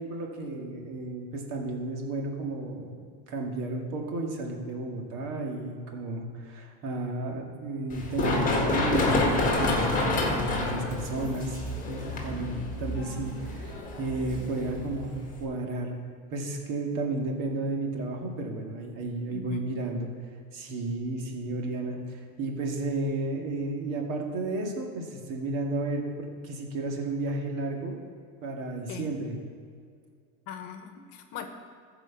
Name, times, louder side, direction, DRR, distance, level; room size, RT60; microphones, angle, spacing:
voice 1, 0.0-3.0 3.3-11.6 11.9-15.1 15.4-16.0 16.3-20.1 20.5-28.0 28.4-29.4, right 2 dB, 45° right, 1 dB, 2.2 m, -33 dB
Run, 7.9-15.4, left 2 dB, 20° left, 1.8 m, -28 dB
voice 2, 19.3-19.7 28.9-29.2 30.5-31.5, left 8 dB, 50° left, 7 dB, 1.2 m, -40 dB
13.5 x 4.9 x 7.1 m, 2.2 s
supercardioid pair, 140°, 43 cm